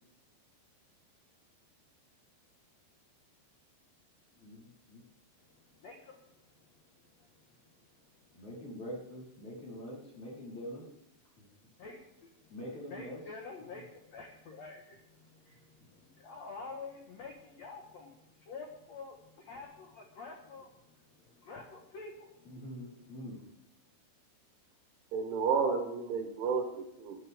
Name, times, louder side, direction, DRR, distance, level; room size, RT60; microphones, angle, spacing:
voice 1, 4.4-5.0 8.3-10.9 11.4-11.5 12.5-13.2 13.7-13.8 15.8-15.9 22.4-23.4, equal, 40° left, -6 dB, 5.2 m, -44 dB
voice 2, 5.8-6.2 11.8-12.3 12.9-20.7 21.2-22.5, left 4 dB, 65° left, 1 dB, 1.7 m, -48 dB
voice 3, 25.1-27.2, right 5 dB, 80° right, 3 dB, 3.9 m, -31 dB
22.5 x 9.8 x 3.6 m, 0.81 s
omnidirectional pair, 5.3 m